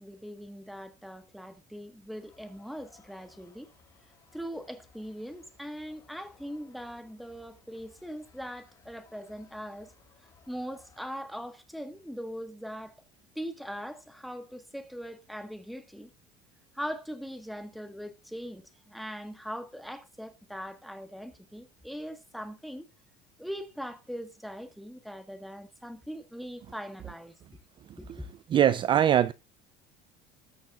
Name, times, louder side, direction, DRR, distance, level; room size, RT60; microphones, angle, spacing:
voice 1, 0.0-3.7 4.3-9.9 10.5-12.9 13.3-16.1 16.7-22.9 23.4-27.4 28.0-28.3, equal, ahead, 1.5 m, -41 dB
sound 1, 2.1-11.1, left 5 dB, 20° left, 5.1 m, -62 dB
voice 2, 28.5-29.3, right 10 dB, 30° right, 0.5 m, -22 dB
19.5 x 7.1 x 2.5 m
cardioid pair, 150°, 16 cm